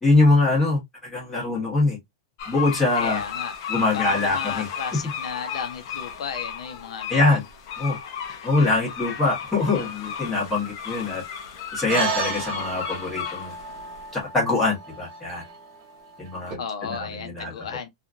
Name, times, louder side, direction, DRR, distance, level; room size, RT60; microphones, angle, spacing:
voice 1, 0.0-2.0 2.5-3.2 3.7-5.0 7.1-7.4 7.8-8.0 8.4-11.2 11.7-13.5 14.1-15.4 16.2-17.8, left 3 dB, 5° left, 1.3 m, -23 dB
sound 1, 2.4-14.0, left 7 dB, 40° left, 0.7 m, -34 dB
voice 2, 2.9-3.5 3.9-7.4 16.6-17.9, left 6 dB, 85° left, 0.7 m, -34 dB
sound 2, 11.9-16.5, right 4 dB, 35° right, 0.8 m, -33 dB
2.8 x 2.4 x 2.5 m
supercardioid pair, 170°, 3 cm